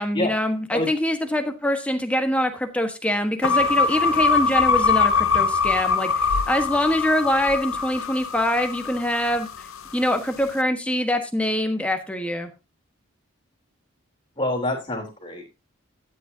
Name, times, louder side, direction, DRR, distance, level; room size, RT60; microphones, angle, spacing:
voice 1, 0.0-9.5 9.9-12.5, left 1 dB, 5° left, 6 dB, 1.3 m, -24 dB
sound 1, 3.4-9.8, left 5 dB, 80° left, 0.7 m, -22 dB
voice 2, 14.4-15.4, left 2 dB, 25° left, 1 dB, 3.3 m, -26 dB
13.0 x 9.1 x 2.8 m, 0.26 s
head